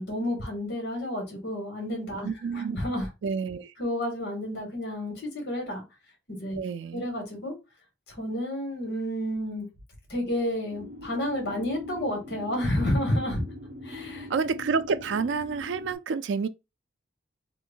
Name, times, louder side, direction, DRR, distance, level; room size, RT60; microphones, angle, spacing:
voice 1, 0.0-3.1 3.8-5.8 6.3-6.6 6.9-7.5 8.1-9.7 10.1-13.4 13.8-14.3, left 1 dB, 60° left, 1.8 m, -30 dB
voice 2, 2.2-2.8 3.2-3.7 6.5-7.0 14.3-16.5, right 5 dB, 85° right, 0.3 m, -29 dB
sound 1, 10.7-15.9, left 2 dB, 45° right, 0.7 m, -42 dB
3.0 x 2.6 x 3.7 m
head